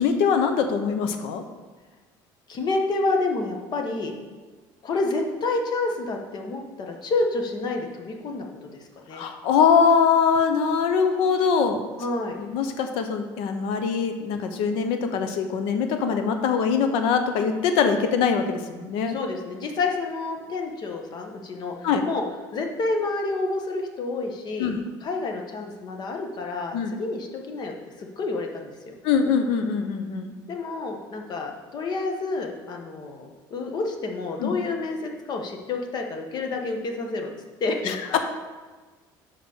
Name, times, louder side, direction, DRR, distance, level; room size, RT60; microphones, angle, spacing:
voice 1, 0.0-1.4 9.1-11.8 12.4-19.2 21.8-22.1 24.6-24.8 26.7-26.9 29.0-30.3 34.4-34.5 37.8-38.2, left 6 dB, 75° left, 7 dB, 1.0 m, -23 dB
voice 2, 2.5-4.1 4.8-9.2 12.0-12.4 19.0-22.2 22.5-24.7 25.0-27.7 28.0-28.9 30.5-37.3 37.6-37.9, left 3 dB, 50° left, 3 dB, 1.4 m, -29 dB
6.1 x 5.1 x 6.7 m, 1.3 s
supercardioid pair, 95°, 9 cm